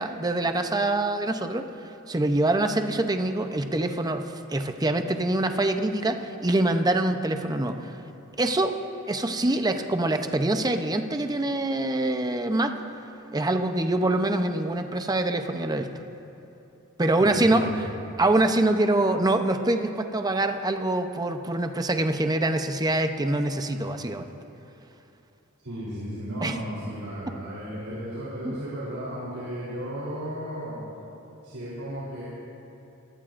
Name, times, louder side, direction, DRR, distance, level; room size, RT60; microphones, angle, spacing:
voice 1, 0.0-1.7 2.1-7.8 8.4-8.7 9.1-12.8 13.3-15.9 17.0-17.9 18.2-24.3 26.4-26.6 28.4-28.6, right 2 dB, 20° right, 6 dB, 0.7 m, -25 dB
voice 2, 17.1-17.8 25.6-30.8 31.4-32.2, equal, 90° right, -8 dB, 3.5 m, -34 dB
23.0 x 17.5 x 2.6 m, 2.8 s
head